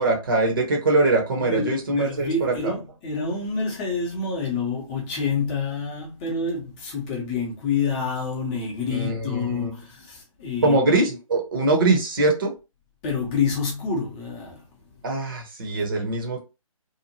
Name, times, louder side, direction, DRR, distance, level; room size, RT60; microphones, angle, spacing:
voice 1, 0.0-2.7 8.9-9.7 10.6-12.5 15.0-16.4, right 2 dB, 40° right, 1.0 m, -22 dB
voice 2, 1.5-10.8 13.0-14.6, left 4 dB, 15° left, 0.8 m, -28 dB
2.8 x 2.4 x 2.8 m
figure-of-eight pair, 145°, 18 cm